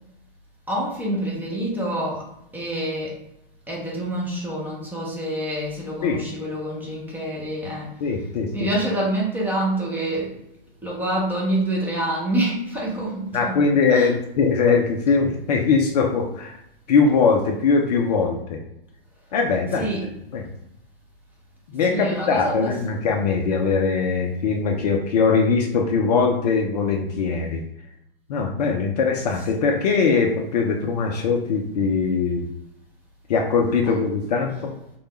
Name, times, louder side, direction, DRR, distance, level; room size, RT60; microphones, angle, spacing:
voice 1, 0.7-2.3 2.5-3.2 3.7-8.0 8.5-10.4 10.8-13.6 13.9-14.1 19.8-20.1 21.9-23.0 33.9-34.0, right 1 dB, 5° right, -4 dB, 0.7 m, -27 dB
voice 2, 8.0-8.7 13.3-16.6 16.9-18.6 19.3-19.9 20.3-20.4 21.7-27.6 28.3-32.5 33.3-34.7, left 5 dB, 45° left, 2 dB, 0.5 m, -21 dB
3.2 x 2.3 x 3.0 m, 0.80 s
figure-of-eight pair, 115°, 30 cm